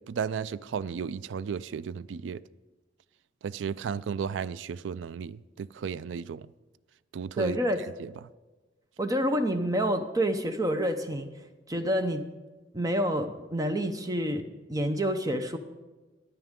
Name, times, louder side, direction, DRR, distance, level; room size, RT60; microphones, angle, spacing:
voice 1, 0.1-2.4 3.4-6.4 7.1-7.6 8.0-8.1, right 7 dB, 85° right, 0.3 m, -34 dB
voice 2, 7.4-7.8 9.0-11.3 11.7-12.2 12.7-15.6, equal, 20° right, 0.7 m, -28 dB
15.0 x 9.8 x 3.7 m
head